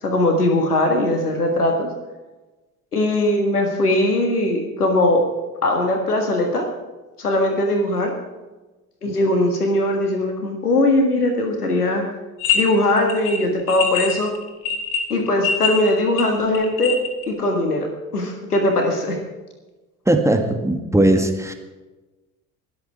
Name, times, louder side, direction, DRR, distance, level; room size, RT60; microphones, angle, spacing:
voice 1, 0.0-1.9 2.9-5.2 5.6-6.7 7.2-8.1 9.0-12.0 12.5-14.3 15.1-17.0 17.3-19.2, left 1 dB, 85° left, 3 dB, 1.7 m, -20 dB
sound 1, 12.4-12.6 12.9-17.2, left 6 dB, 65° left, 2.6 m, -24 dB
voice 2, 20.1-21.5, right 1 dB, 5° right, 4 dB, 1.9 m, -18 dB
21.5 x 8.0 x 4.7 m, 1.2 s
figure-of-eight pair, 60°, 44 cm